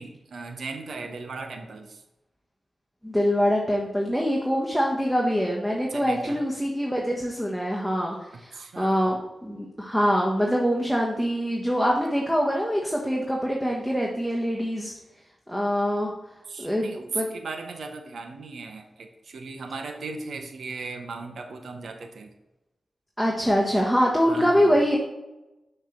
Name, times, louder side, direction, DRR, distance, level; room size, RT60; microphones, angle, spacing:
voice 1, 0.0-2.0 5.9-6.4 8.5-9.1 16.5-22.4 24.3-24.8, right 4 dB, 75° right, 6 dB, 0.9 m, -37 dB
voice 2, 3.0-14.9 15.5-16.1 16.6-16.8 17.1-17.3 23.2-25.0, equal, 5° right, -2 dB, 1.2 m, -24 dB
6.5 x 3.3 x 5.9 m, 0.98 s
cardioid pair, 45°, 0 cm